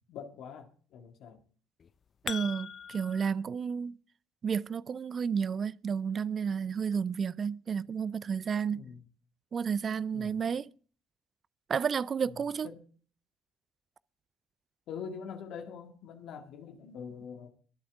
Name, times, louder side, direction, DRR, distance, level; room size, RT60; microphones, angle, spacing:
voice 1, 0.1-1.4 8.7-9.0 10.1-10.4 12.6-12.8 14.9-17.5, left 6 dB, 60° left, 1.8 m, -44 dB
sound 1, 1.8-3.3, left 7 dB, 45° left, 0.5 m, -40 dB
voice 2, 2.2-3.9 4.4-8.8 9.5-10.7 11.7-12.7, right 6 dB, 45° right, 0.5 m, -31 dB
23.5 x 7.8 x 3.6 m
figure-of-eight pair, 45°, 0 cm